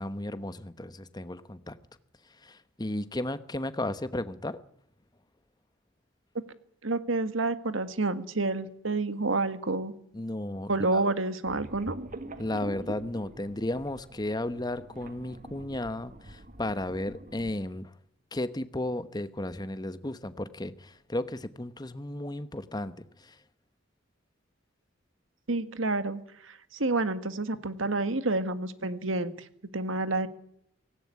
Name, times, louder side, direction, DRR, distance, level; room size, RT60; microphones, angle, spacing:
voice 1, 0.0-1.8 2.4-4.6 10.1-11.0 12.4-17.9 18.3-23.4, left 1 dB, 20° left, 1.1 m, -34 dB
voice 2, 6.8-9.9 10.7-11.9 25.5-29.3 29.7-30.3, right 2 dB, 85° right, 1.7 m, -29 dB
sound 1, 11.4-17.5, right 1 dB, 45° right, 1.6 m, -45 dB
17.5 x 17.0 x 9.6 m
head